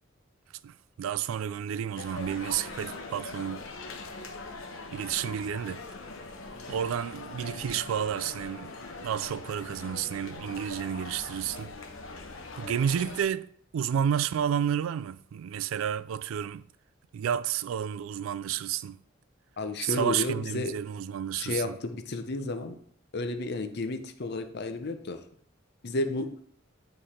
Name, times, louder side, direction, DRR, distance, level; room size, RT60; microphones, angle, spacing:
voice 1, 0.6-3.7 4.9-5.8 6.7-8.7 9.0-11.7 12.6-13.5 13.7-16.6 17.1-19.0 19.8-21.8, right 9 dB, 90° right, 0.3 m, -31 dB
sound 1, 1.9-13.3, left 3 dB, 85° left, 0.8 m, -42 dB
voice 2, 19.6-20.7 21.4-22.8 23.1-25.2 25.8-26.4, left 2 dB, 55° left, 0.7 m, -32 dB
9.2 x 3.3 x 4.3 m
head